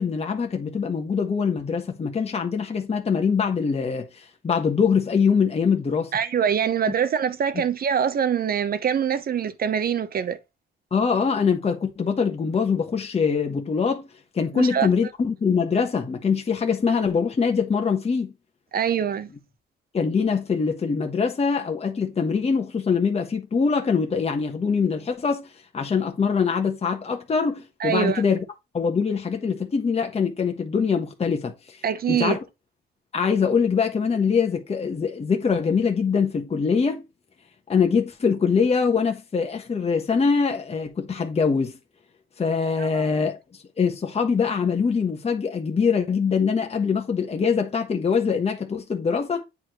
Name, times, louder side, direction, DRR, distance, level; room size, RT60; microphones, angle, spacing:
voice 1, 0.0-6.1 10.9-14.0 14.3-18.3 19.9-28.4 28.7-31.8 32.1-32.4 33.1-37.0 37.7-41.7 42.4-43.4 43.8-49.4, left 5 dB, 30° left, 1.2 m, -23 dB
voice 2, 6.1-10.4 14.5-14.9 18.7-19.3 27.8-28.2 31.8-32.4 42.8-43.1, right 8 dB, 50° right, 0.9 m, -24 dB
8.5 x 4.4 x 3.1 m
cardioid pair, 90°, 20 cm